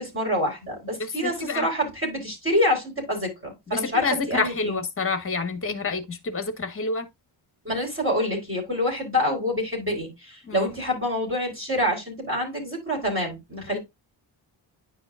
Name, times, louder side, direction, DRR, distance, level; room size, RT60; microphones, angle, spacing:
voice 1, 0.0-4.8 7.6-13.8, left 1 dB, 25° right, 4.3 m, -27 dB
voice 2, 1.2-1.7 3.7-7.1 10.5-10.7 13.7-13.8, left 4 dB, 25° left, 1.3 m, -28 dB
10.0 x 4.9 x 2.4 m
wide cardioid pair, 150°, 47 cm